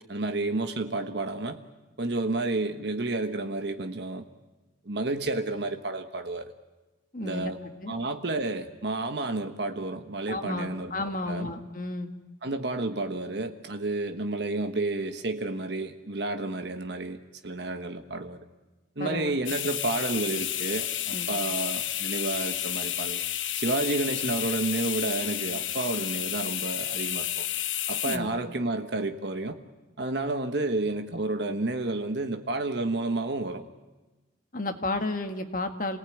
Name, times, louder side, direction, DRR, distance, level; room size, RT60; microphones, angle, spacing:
voice 1, 0.1-1.6 2.0-4.2 4.8-6.5 7.2-7.6 7.9-10.9 11.3-11.5 12.4-18.4 19.0-23.2 23.6-27.5 27.9-29.6 30.0-33.6, right 2 dB, 60° right, 6 dB, 1.3 m, -30 dB
voice 2, 7.1-7.5 7.8-7.9 10.3-12.1 19.0-19.3 21.1-21.3 28.1-28.3 34.5-36.0, left 2 dB, 45° left, 6 dB, 1.7 m, -32 dB
sound 1, 19.5-28.2, left 12 dB, 85° left, 1.0 m, -31 dB
27.5 x 18.5 x 9.3 m, 1.2 s
head